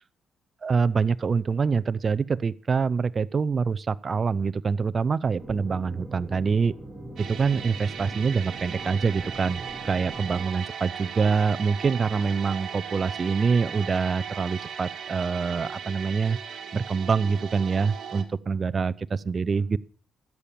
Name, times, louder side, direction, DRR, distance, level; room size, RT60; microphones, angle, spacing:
voice 1, 0.6-6.7 7.3-16.4 16.7-19.8, right 5 dB, 40° right, 0.6 m, -25 dB
sound 1, 5.4-10.4, right 1 dB, 15° right, 2.5 m, -41 dB
sound 2, 7.2-18.2, right 7 dB, 55° right, 2.2 m, -37 dB
13.5 x 8.6 x 6.9 m
cardioid pair, 90°, 0 cm